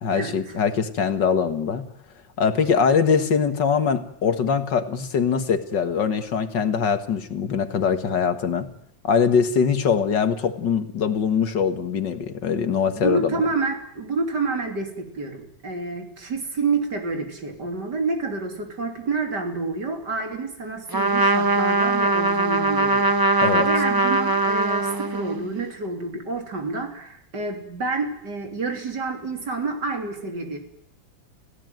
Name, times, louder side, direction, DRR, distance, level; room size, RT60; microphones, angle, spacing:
voice 1, 0.0-1.8 2.4-8.7 9.0-13.3 23.4-23.7, left 6 dB, 70° left, 10 dB, 2.2 m, -22 dB
voice 2, 12.9-30.6, right 3 dB, 60° right, 5 dB, 3.8 m, -29 dB
Trumpet, 20.9-25.5, right 2 dB, 15° right, 1.0 m, -21 dB
29.5 x 16.5 x 9.3 m, 0.70 s
omnidirectional pair, 2.0 m